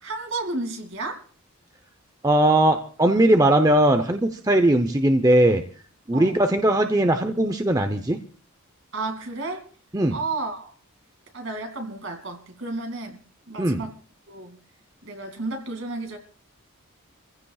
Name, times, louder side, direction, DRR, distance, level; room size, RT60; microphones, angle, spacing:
voice 1, 0.0-1.2 6.1-6.4 8.9-9.7 10.1-10.7 11.3-13.2 13.5-13.9 14.3-14.6 15.0-16.2, right 3 dB, 60° right, 2.5 m, -32 dB
voice 2, 2.2-5.6 6.1-8.2 9.9-10.2 13.6-13.8, right 1 dB, 15° right, 0.7 m, -19 dB
28.5 x 15.5 x 2.4 m
head